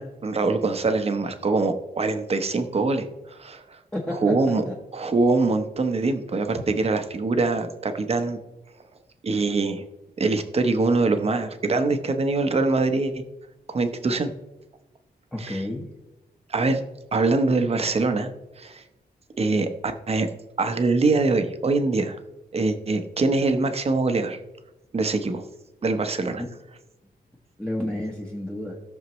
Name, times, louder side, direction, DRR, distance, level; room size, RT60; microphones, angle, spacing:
voice 1, 0.0-3.8 4.2-4.6 4.9-8.4 9.2-9.8 10.2-13.2 13.7-14.3 15.4-15.6 16.5-16.8 17.1-18.8 19.4-20.3 20.6-22.2 22.5-24.4 24.9-25.4 25.8-26.4, right 3 dB, 35° right, 7 dB, 0.9 m, -23 dB
voice 2, 3.9-4.8 15.3-15.9 26.4-26.5 27.6-28.8, left 1 dB, 5° left, -3 dB, 1.1 m, -31 dB
17.5 x 6.5 x 3.1 m, 1.0 s
wide cardioid pair, 145°, 17 cm